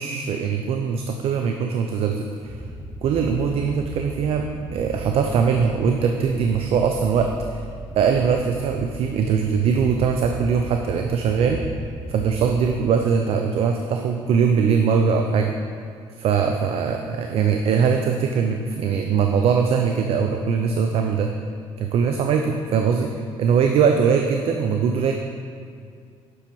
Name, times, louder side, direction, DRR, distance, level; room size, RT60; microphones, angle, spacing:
voice 1, 0.0-2.6 3.0-7.6 8.0-11.6 12.1-15.5 16.2-21.3 21.8-25.1, right 6 dB, 60° right, 4 dB, 0.6 m, -21 dB
sound 1, 2.4-12.8, right 1 dB, 15° right, 1.2 m, -37 dB
7.6 x 6.5 x 5.4 m, 2.3 s
cardioid pair, 95°, 11 cm